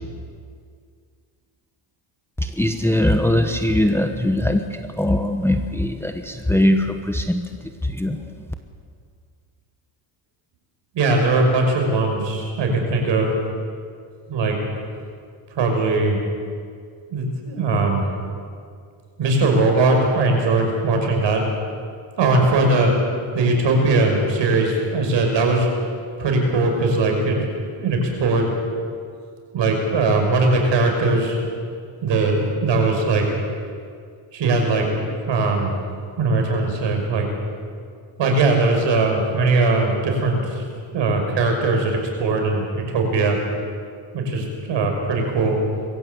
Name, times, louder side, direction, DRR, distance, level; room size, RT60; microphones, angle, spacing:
voice 1, 2.4-8.5, left 1 dB, 5° left, 6 dB, 1.1 m, -21 dB
voice 2, 10.9-13.3 14.3-14.6 15.5-16.2 17.1-18.0 19.2-21.4 22.2-22.9 23.3-25.7 26.2-27.5 27.8-28.5 29.5-31.4 32.0-33.3 34.3-35.8 36.2-37.3 38.2-40.6 40.9-43.4 44.1-45.6, right 3 dB, 60° right, 2 dB, 5.9 m, -20 dB
22.0 x 15.5 x 8.2 m, 2.1 s
cardioid pair, 120°, 50 cm